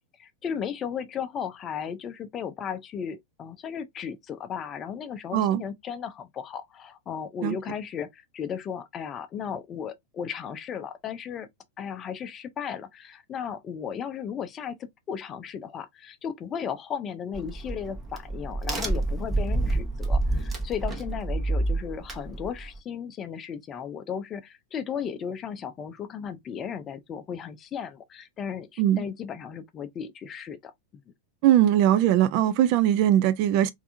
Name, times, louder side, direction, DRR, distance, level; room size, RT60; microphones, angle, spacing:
voice 1, 0.2-11.5 11.8-30.7, left 7 dB, 25° left, 0.5 m, -35 dB
Crack, 17.3-22.8, right 2 dB, 15° right, 1.0 m, -28 dB
voice 2, 31.4-33.7, right 11 dB, 45° right, 0.3 m, -20 dB
3.3 x 2.6 x 2.5 m
figure-of-eight pair, 90°, 0 cm